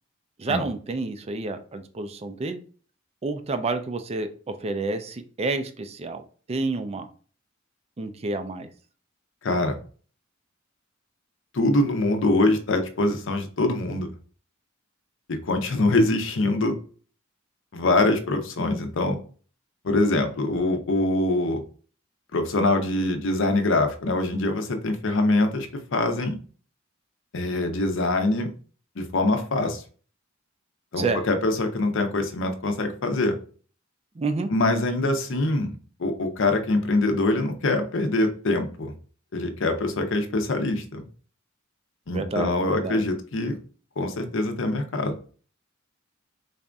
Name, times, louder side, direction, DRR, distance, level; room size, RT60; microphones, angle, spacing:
voice 1, 0.4-2.6 3.2-4.3 4.6-6.2 6.5-7.1 8.0-8.7 31.0-31.2 34.2-34.5 42.1-43.0, right 3 dB, 30° right, 9 dB, 0.4 m, -29 dB
voice 2, 9.4-9.8 11.5-14.1 15.3-16.8 17.7-19.2 19.8-21.6 22.3-26.4 27.3-28.5 29.0-29.8 30.9-33.4 34.5-35.7 36.0-38.9 39.3-41.0 42.1-43.6 44.0-45.1, left 2 dB, 65° left, 6 dB, 0.7 m, -24 dB
4.1 x 2.5 x 3.4 m, 0.41 s
head